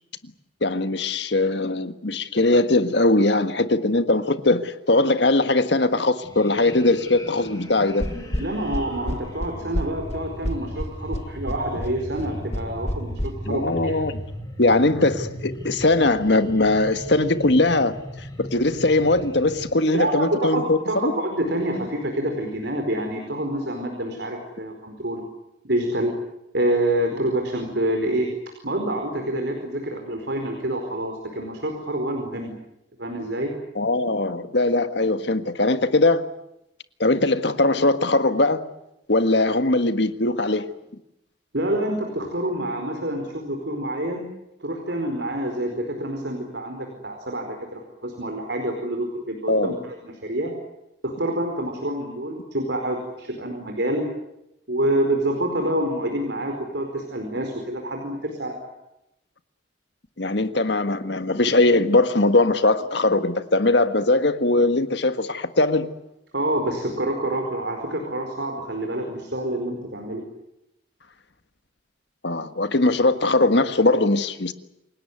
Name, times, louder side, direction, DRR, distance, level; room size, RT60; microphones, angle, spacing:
voice 1, 0.6-8.1 13.5-14.2 14.6-21.1 33.7-36.3 37.0-38.7 39.1-40.7 49.5-49.7 60.2-65.9 72.2-74.5, left 2 dB, 70° left, 1.6 m, -20 dB
sound 1, 6.2-19.7, equal, 20° left, 7.3 m, -37 dB
sound 2, 8.0-13.3, left 1 dB, 35° left, 1.5 m, -28 dB
voice 2, 8.4-14.0 19.9-25.2 25.7-26.1 26.5-28.3 28.6-32.6 33.0-33.5 41.5-44.3 44.6-50.5 51.0-54.0 54.7-58.6 66.3-70.2, right 1 dB, 65° right, 4.7 m, -27 dB
28.0 x 18.5 x 9.5 m
head